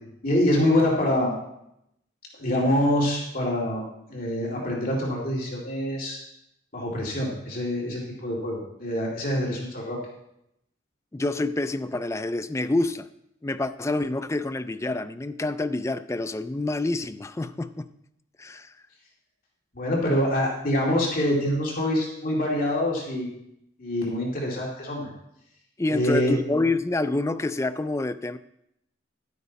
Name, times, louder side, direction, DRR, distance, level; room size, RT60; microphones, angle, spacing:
voice 1, 0.2-1.3 2.4-3.8 4.1-6.2 6.7-10.0 19.7-23.3 23.8-25.1 25.9-26.4, left 1 dB, 45° left, 2.4 m, -25 dB
voice 2, 11.1-13.1 13.4-17.9 18.4-18.7 25.8-28.4, left 2 dB, 15° left, 0.3 m, -27 dB
11.5 x 9.4 x 4.1 m
head